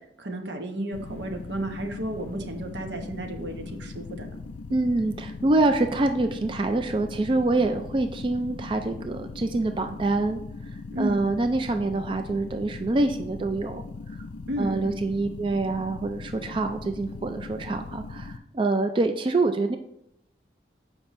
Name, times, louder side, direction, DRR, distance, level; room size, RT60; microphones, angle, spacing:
voice 1, 0.2-4.4 10.9-11.2 14.5-15.0, right 1 dB, 80° right, 4 dB, 0.9 m, -33 dB
sound 1, 0.9-18.4, left 3 dB, 85° left, 0.5 m, -39 dB
voice 2, 4.7-10.4 11.0-13.8 14.6-19.8, right 2 dB, 30° right, 6 dB, 0.3 m, -25 dB
7.2 x 5.2 x 3.1 m, 0.79 s
head